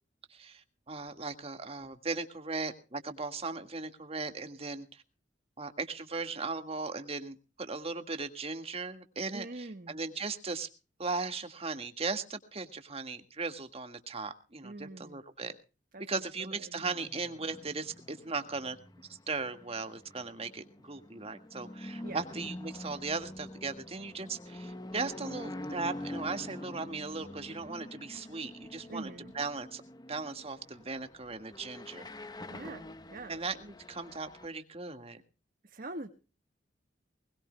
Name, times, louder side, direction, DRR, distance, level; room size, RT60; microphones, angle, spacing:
voice 1, 0.3-5.0 5.6-10.7 11.0-15.5 16.1-18.8 19.1-29.8 30.1-32.1 33.3-35.2, right 4 dB, 35° right, 8 dB, 1.8 m, -38 dB
voice 2, 9.3-10.0 14.6-15.2 15.9-16.8 22.0-22.2 28.9-29.3 32.5-33.4 35.6-36.1, right 2 dB, 50° right, 6 dB, 1.4 m, -44 dB
sound 1, 16.8-34.5, left 1 dB, 20° left, 1.0 m, -46 dB
21.0 x 21.0 x 2.2 m, 0.34 s
head